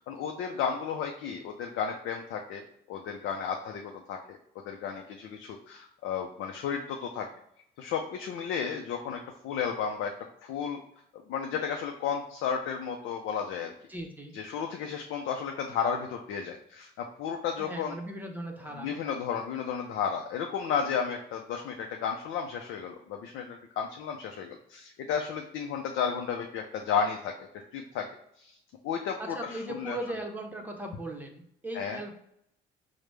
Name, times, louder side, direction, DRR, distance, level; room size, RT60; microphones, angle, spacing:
voice 1, 0.1-4.4 4.6-7.3 7.8-10.1 10.4-10.8 11.3-13.7 14.3-18.0 18.8-27.3 27.7-28.1 28.4-28.6 28.8-30.0 31.7-32.0, left 7 dB, 90° left, 3 dB, 0.5 m, -33 dB
voice 2, 13.9-14.3 17.6-18.9 29.2-32.1, right 1 dB, 10° right, 2 dB, 0.8 m, -38 dB
4.9 x 2.1 x 3.2 m, 0.72 s
cardioid pair, 90°, 20 cm